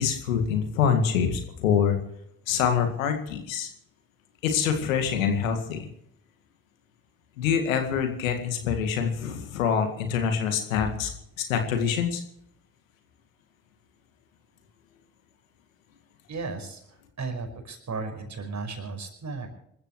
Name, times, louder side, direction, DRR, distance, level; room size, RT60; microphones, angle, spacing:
voice 1, 0.0-2.0 2.5-3.7 4.4-5.9 7.4-11.1 11.4-12.2, left 7 dB, 80° left, 6 dB, 2.0 m, -25 dB
voice 2, 16.3-19.5, right 4 dB, 45° right, 5 dB, 5.5 m, -35 dB
26.5 x 14.0 x 3.2 m, 0.74 s
figure-of-eight pair, 40°, 40 cm